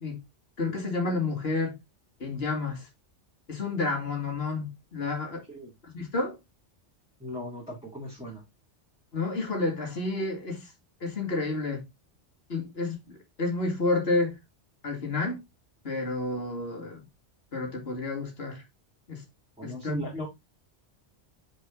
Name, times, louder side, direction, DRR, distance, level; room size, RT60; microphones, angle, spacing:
voice 1, 0.6-1.8 2.2-2.9 3.5-5.4 5.8-6.4 9.1-10.7 11.0-11.8 12.5-14.4 14.8-15.4 15.8-17.0 17.5-18.6 19.1-19.2 19.6-20.1, left 3 dB, 55° left, 2.4 m, -30 dB
voice 2, 7.2-8.4 19.6-20.3, right 1 dB, 5° right, 2.2 m, -38 dB
6.0 x 4.9 x 3.7 m
omnidirectional pair, 1.2 m